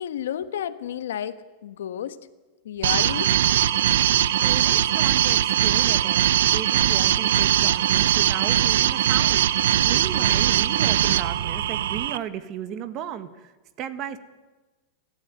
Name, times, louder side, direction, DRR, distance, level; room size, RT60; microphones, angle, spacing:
voice 1, 0.0-2.2 2.6-3.3, left 10 dB, 90° left, 12 dB, 1.3 m, -31 dB
sound 1, 2.8-12.2, right 11 dB, 75° right, 0.8 m, -21 dB
voice 2, 4.4-13.5 13.8-14.2, right 9 dB, 30° right, 12 dB, 1.5 m, -35 dB
29.0 x 13.0 x 9.4 m, 1.2 s
supercardioid pair, 165°, 0 cm